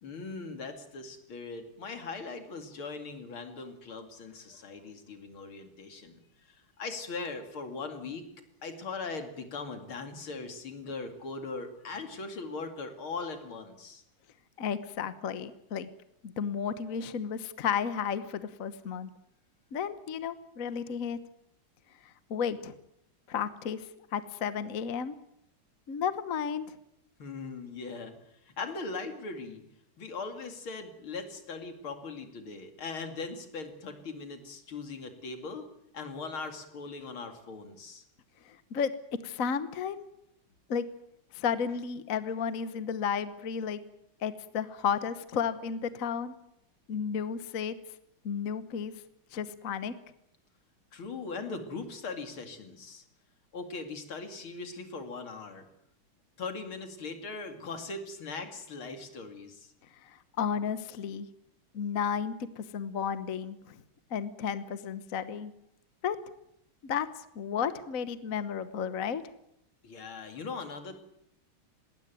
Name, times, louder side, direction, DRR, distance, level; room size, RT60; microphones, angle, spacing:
voice 1, 0.0-8.2 8.6-14.0 27.2-28.2 28.5-29.6 30.0-35.7 35.9-38.0 50.9-53.0 53.5-55.6 56.4-59.7 69.8-70.9, left 4 dB, 75° left, 7 dB, 3.3 m, -40 dB
voice 2, 14.6-15.9 16.2-19.1 19.7-21.2 22.0-22.7 23.3-23.9 24.1-25.1 25.9-26.6 38.4-38.9 39.2-40.0 40.7-40.8 41.3-43.8 44.2-46.3 46.9-47.7 48.2-48.9 49.3-49.9 60.0-61.3 61.7-63.8 64.1-65.5 66.0-66.2 66.8-67.1 67.3-69.2, left 7 dB, 45° left, 13 dB, 1.3 m, -33 dB
20.0 x 19.0 x 9.3 m, 0.77 s
omnidirectional pair, 2.3 m